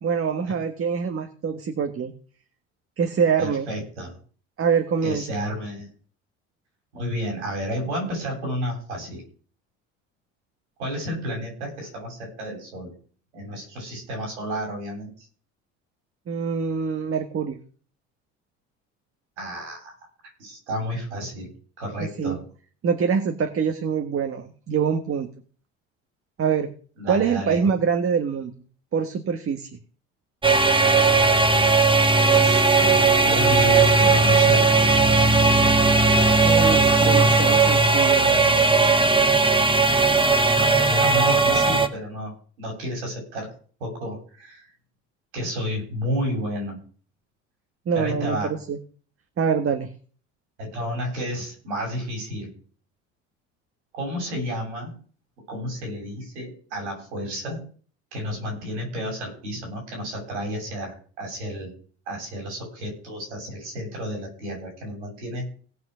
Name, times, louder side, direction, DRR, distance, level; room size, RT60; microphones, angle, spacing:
voice 1, 0.0-2.1 3.0-3.7 4.6-5.2 16.3-17.6 22.0-22.4 22.8-25.3 26.4-26.7 27.1-28.5 28.9-29.7 36.4-38.7 47.9-48.8 49.4-49.9, right 6 dB, 40° right, 6 dB, 1.6 m, -25 dB
voice 2, 3.4-4.2 5.0-5.9 6.9-9.2 10.8-12.9 13.3-15.3 19.4-20.0 20.4-21.5 21.8-22.4 27.0-27.7 32.2-34.7 39.9-42.3 42.6-43.5 43.8-44.7 45.3-46.8 47.9-48.5 50.6-52.5 53.9-54.9 55.5-57.6 58.1-61.7 62.1-65.5, equal, 90° right, 1 dB, 7.7 m, -31 dB
sound 1, 30.4-41.9, right 3 dB, 15° right, 1.9 m, -17 dB
17.5 x 6.0 x 6.3 m, 0.43 s
hypercardioid pair, 70°, 34 cm